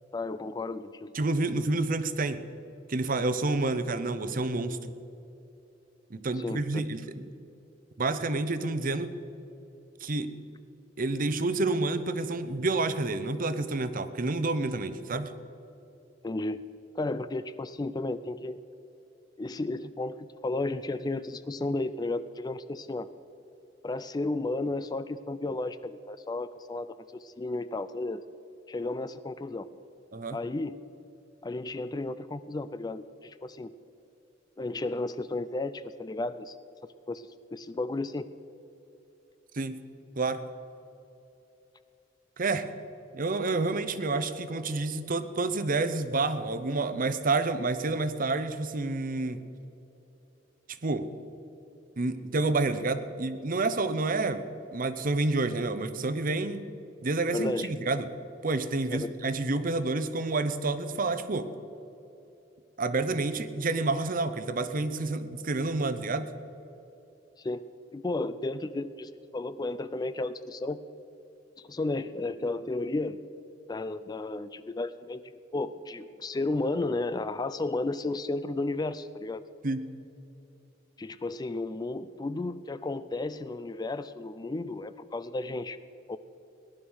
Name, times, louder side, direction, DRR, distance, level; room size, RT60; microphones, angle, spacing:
voice 1, 0.1-1.1 6.4-6.6 16.2-16.7 17.0-18.6 19.4-23.1 23.8-28.2 28.7-29.7 30.3-30.8 31.4-33.7 34.6-36.6 37.1-38.3 57.3-57.7 58.9-59.1 67.4-67.6 67.9-70.8 71.6-73.2 73.7-79.4 81.0-85.8 86.1-86.2, left 2 dB, 20° left, 13 dB, 0.4 m, -33 dB
voice 2, 1.1-2.5 2.9-4.8 6.1-7.0 8.0-9.1 10.0-10.3 11.0-15.3 30.1-30.4 39.5-39.8 40.2-40.4 42.4-42.7 43.1-49.4 50.8-51.1 52.0-56.6 57.0-58.1 58.4-61.5 62.8-66.3 79.6-79.9, right 3 dB, 50° right, 12 dB, 0.8 m, -29 dB
18.5 x 11.0 x 6.3 m, 2.9 s
head